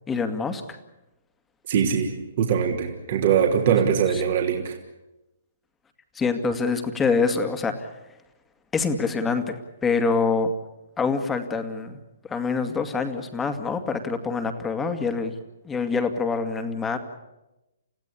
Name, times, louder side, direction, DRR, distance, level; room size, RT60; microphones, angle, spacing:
voice 1, 0.1-0.8 6.1-7.9 8.7-10.5 11.0-12.0 12.3-15.3 15.6-17.0, left 4 dB, 15° left, 7 dB, 2.3 m, -25 dB
voice 2, 1.7-4.8, right 7 dB, 50° right, 2 dB, 3.3 m, -22 dB
29.5 x 16.0 x 8.6 m, 0.96 s
figure-of-eight pair, 130°, 0 cm